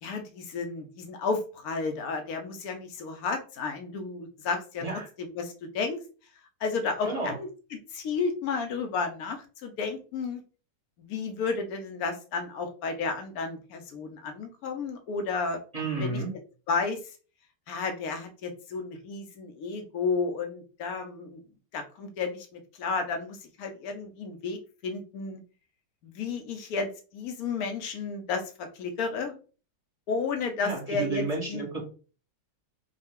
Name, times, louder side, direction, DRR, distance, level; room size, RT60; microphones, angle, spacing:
voice 1, 0.0-4.8 5.2-6.0 6.6-10.4 11.0-15.6 16.0-16.2 16.7-17.0 17.7-21.4 21.7-25.4 26.0-29.4 30.1-31.6, left 4 dB, 60° left, 6 dB, 1.2 m, -32 dB
voice 2, 7.0-7.3 15.7-16.3 30.6-31.8, right 3 dB, 25° right, -3 dB, 1.3 m, -31 dB
5.5 x 2.4 x 3.6 m, 0.37 s
omnidirectional pair, 1.9 m